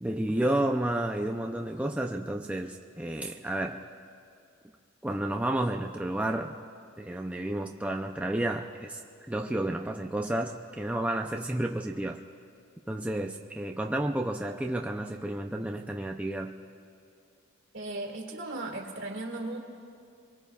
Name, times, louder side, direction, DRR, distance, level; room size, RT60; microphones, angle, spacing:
voice 1, 0.0-3.9 5.0-6.6 7.0-9.0 9.3-12.2 12.9-16.6, right 1 dB, 5° right, 1 dB, 0.4 m, -31 dB
voice 2, 17.7-19.6, right 2 dB, 60° right, 1 dB, 2.2 m, -36 dB
26.0 x 23.5 x 2.3 m, 2.4 s
head